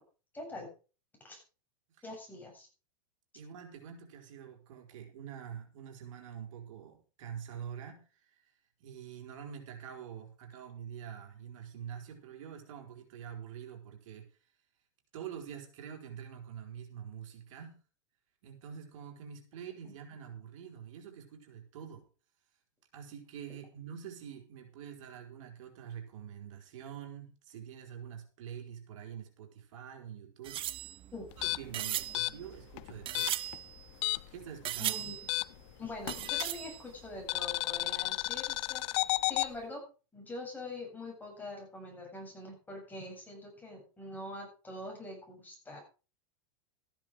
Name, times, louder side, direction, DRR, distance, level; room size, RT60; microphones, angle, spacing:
voice 1, 0.3-0.7 1.2-1.4 2.0-2.7 19.8-19.9 31.1-31.2 34.8-35.2 35.8-39.8 40.1-45.8, left 2 dB, 10° left, 0 dB, 7.7 m, -44 dB
voice 2, 3.3-8.4 8.8-14.3 15.1-17.8 18.4-22.0 22.9-30.6 31.4-33.4 34.3-34.9, right 8 dB, 70° right, 2 dB, 4.8 m, -46 dB
sound 1, 30.4-34.3 34.6-35.6 36.1-37.2 37.5-37.6 37.8-37.9, right 13 dB, 30° right, 0.8 m, -38 dB
sound 2, 31.3-34.4 34.7-36.7 37.3-39.5, left 21 dB, 55° left, 0.6 m, -33 dB
14.5 x 10.5 x 5.0 m, 0.36 s
supercardioid pair, 130°, 17 cm